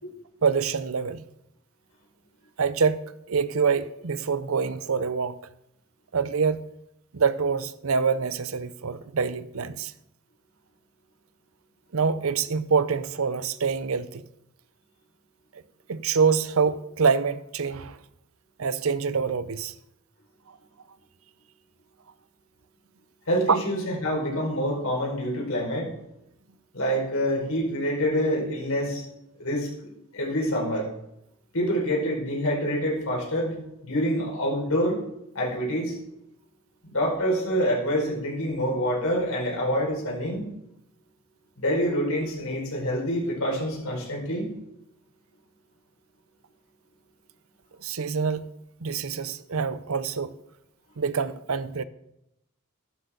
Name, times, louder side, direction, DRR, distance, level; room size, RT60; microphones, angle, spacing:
voice 1, 0.4-1.2 2.6-5.4 6.1-6.7 7.1-9.9 11.9-14.2 15.9-18.0 18.6-19.7 23.5-23.6 47.8-48.5 48.8-50.4 51.0-51.8, right 5 dB, 80° right, 0.7 m, -25 dB
voice 2, 23.3-25.9 26.7-29.0 29.4-29.7 30.1-30.9 31.5-33.5 33.8-35.0 35.3-35.9 36.8-40.5 41.6-44.5, equal, 85° left, 5.3 m, -26 dB
14.5 x 12.0 x 3.9 m
head